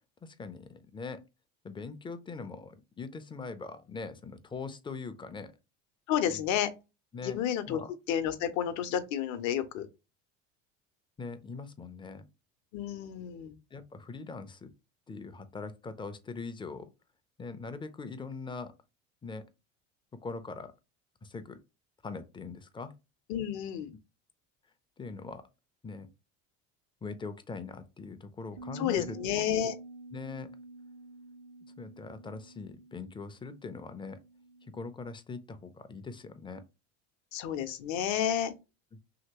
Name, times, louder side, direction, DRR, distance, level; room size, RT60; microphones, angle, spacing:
voice 1, 0.2-1.2 1.6-5.5 6.3-6.5 7.1-7.4 7.7-7.9 11.2-12.2 13.7-14.7 15.1-16.9 17.4-18.7 19.2-19.5 20.2-20.7 21.2-21.6 22.0-22.9 25.0-25.4 25.8-26.1 27.0-29.2 30.1-30.5 31.8-34.2 34.7-36.6, left 4 dB, 15° left, 0.4 m, -41 dB
voice 2, 6.1-6.7 7.2-7.8 8.1-9.9 12.7-13.5 23.3-23.9 28.7-29.8 37.3-38.5, left 9 dB, 55° left, 0.7 m, -31 dB
sound 1, 28.6-34.8, right 2 dB, 80° right, 1.1 m, -48 dB
2.9 x 2.9 x 2.8 m
hypercardioid pair, 85°, 34 cm